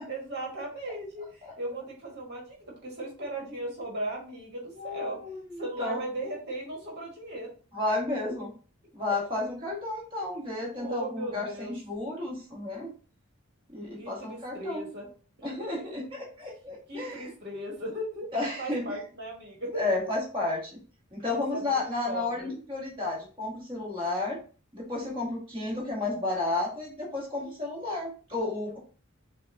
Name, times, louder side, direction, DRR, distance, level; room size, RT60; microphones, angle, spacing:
voice 1, 0.1-5.2 5.6-7.5 10.7-11.7 14.0-15.1 15.4-15.9 16.9-18.3 18.6-20.1 21.3-21.6 22.0-22.5 28.7-28.8, right 1 dB, 50° right, -1 dB, 1.5 m, -37 dB
voice 2, 4.8-6.0 7.7-8.5 8.9-12.9 13.7-14.9 15.4-17.3 18.3-18.8 19.7-20.8 21.1-24.4 24.7-28.8, left 2 dB, 25° right, -5 dB, 1.7 m, -32 dB
6.1 x 2.3 x 2.7 m, 0.39 s
head